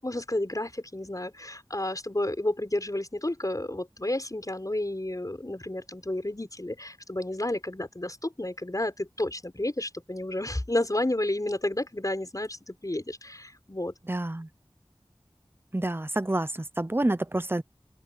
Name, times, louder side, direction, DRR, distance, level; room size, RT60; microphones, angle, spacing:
voice 1, 0.0-13.9, left 1 dB, 35° left, 6.2 m, -31 dB
voice 2, 14.1-14.5 15.7-17.6, right 1 dB, 25° right, 0.8 m, -28 dB
open air
wide cardioid pair, 45°, 10 cm